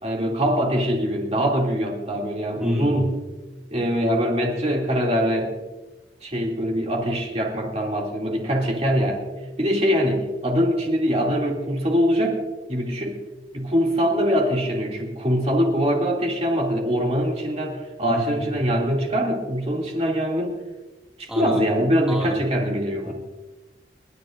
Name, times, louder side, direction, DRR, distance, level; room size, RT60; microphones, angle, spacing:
voice 1, 0.0-3.2 3.7-5.5 6.2-9.2 9.6-12.4 12.7-13.2 13.5-20.5 21.2-23.1, equal, 35° right, -1 dB, 2.6 m, -23 dB
voice 2, 2.6-3.1 18.1-18.6 21.3-21.6 22.1-22.4 23.1-23.2, equal, 5° right, -3 dB, 2.1 m, -29 dB
30.0 x 11.0 x 2.6 m, 1.1 s
head